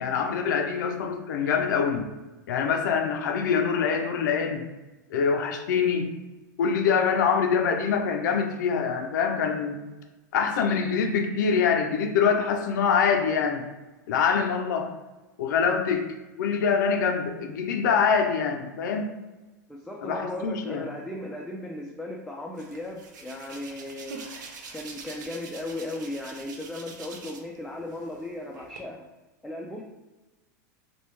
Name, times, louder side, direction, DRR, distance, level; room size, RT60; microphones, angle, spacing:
voice 1, 0.0-2.1 2.5-4.7 5.1-6.1 6.6-9.8 10.3-13.7 14.1-14.9 15.4-16.1 16.4-19.1 20.0-20.9, left 6 dB, 75° left, 4 dB, 0.4 m, -24 dB
voice 2, 19.7-24.3 24.7-29.1 29.4-29.8, left 1 dB, 5° left, -2 dB, 0.4 m, -36 dB
Hands, 22.6-27.6 27.9-28.8, right 4 dB, 80° right, 0.5 m, -44 dB
2.9 x 2.2 x 3.3 m, 1.1 s
hypercardioid pair, 105°, 10 cm